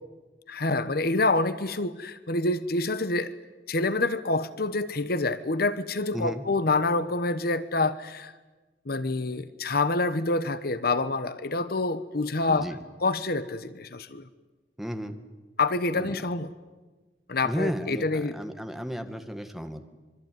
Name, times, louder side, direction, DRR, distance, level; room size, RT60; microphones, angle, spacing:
voice 1, 0.5-3.3 3.7-8.3 8.9-12.7 13.0-14.3 15.6-16.5 17.3-18.3, left 3 dB, 60° left, 13 dB, 1.1 m, -27 dB
voice 2, 6.1-6.5 12.5-12.8 14.8-15.2 15.9-16.2 17.4-19.9, equal, ahead, 6 dB, 1.9 m, -34 dB
25.5 x 24.0 x 9.4 m, 1.2 s
head